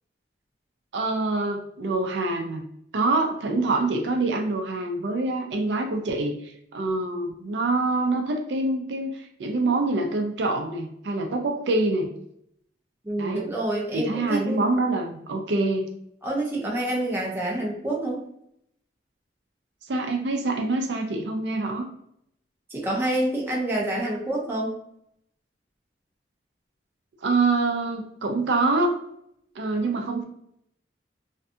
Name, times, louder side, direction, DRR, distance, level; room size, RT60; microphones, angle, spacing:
voice 1, 0.9-2.6 2.9-12.1 13.2-13.5 13.9-15.9 19.9-21.9 27.2-29.0 29.6-30.2, right 2 dB, 75° right, 3 dB, 0.4 m, -25 dB
voice 2, 13.0-14.6 16.2-18.2 22.7-24.7, right 1 dB, 10° right, -3 dB, 0.6 m, -27 dB
2.6 x 2.2 x 2.6 m, 0.71 s
head